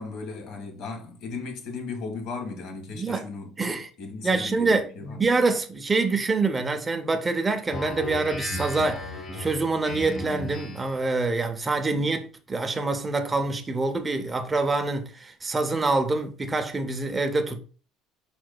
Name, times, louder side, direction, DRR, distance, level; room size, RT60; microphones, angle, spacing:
voice 1, 0.0-3.5 4.0-5.4 11.9-12.1, left 4 dB, 60° left, 1.6 m, -36 dB
voice 2, 3.6-3.9 4.2-17.6, right 3 dB, 15° right, 0.6 m, -26 dB
Speech synthesizer, 7.7-11.0, left 1 dB, 35° left, 1.0 m, -35 dB
5.1 x 4.6 x 2.2 m
cardioid pair, 145°, 0 cm